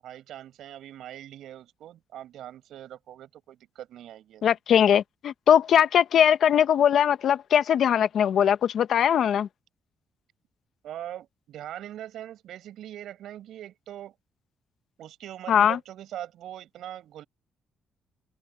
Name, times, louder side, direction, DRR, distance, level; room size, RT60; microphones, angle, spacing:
voice 1, 0.0-4.4 10.8-14.1 15.0-17.2, right 12 dB, 75° right, 7.9 m, -41 dB
voice 2, 4.4-9.5 15.5-15.8, left 9 dB, 65° left, 1.3 m, -21 dB
open air
cardioid pair, 90°, 0 cm